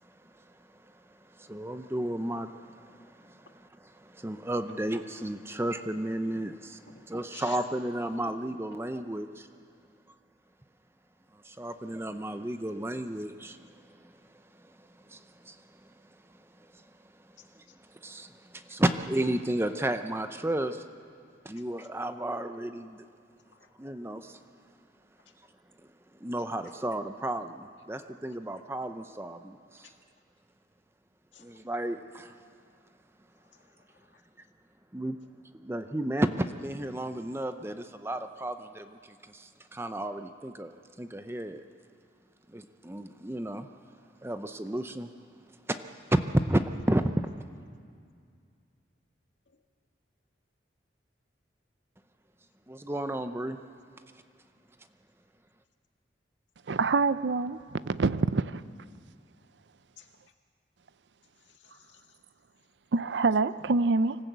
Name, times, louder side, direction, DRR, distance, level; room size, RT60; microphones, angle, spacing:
voice 1, 0.0-9.5 11.3-14.0 14.5-16.9 17.2-20.8 21.4-23.0 23.8-24.4 26.1-29.9 31.4-32.4 34.9-35.2 35.6-41.6 42.5-43.7 44.2-45.1 45.7-45.8 46.1-47.1 52.7-53.6, right 1 dB, 15° right, 9 dB, 0.6 m, -33 dB
voice 2, 21.6-21.9 23.5-23.7 31.3-31.5 33.5-34.0 49.5-49.6 60.0-60.1 61.5-62.0, left 9 dB, 85° left, 4 dB, 1.8 m, -53 dB
voice 3, 56.7-58.6 62.9-64.2, right 3 dB, 75° right, 15 dB, 0.5 m, -26 dB
25.5 x 14.5 x 8.1 m, 2.3 s
head